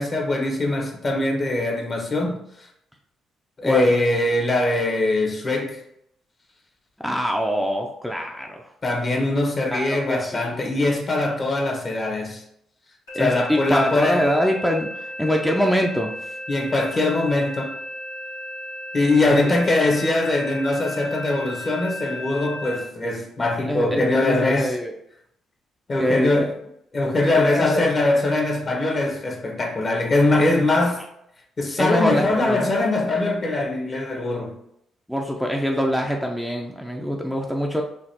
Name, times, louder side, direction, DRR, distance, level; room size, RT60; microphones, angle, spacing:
voice 1, 0.0-2.7 3.6-5.8 8.8-12.4 13.2-14.3 16.5-17.8 18.9-24.7 25.9-26.5 26.9-31.0 31.6-34.5, left 2 dB, 40° left, 1.2 m, -22 dB
voice 2, 7.0-8.6 9.7-10.6 13.1-16.1 19.3-19.5 23.7-24.9 26.0-26.4 27.4-27.8 31.8-32.7 35.1-37.8, equal, ahead, 0.6 m, -24 dB
sound 1, 13.1-22.8, left 1 dB, 85° left, 1.4 m, -35 dB
5.1 x 2.7 x 2.8 m
hypercardioid pair, 45°, 0 cm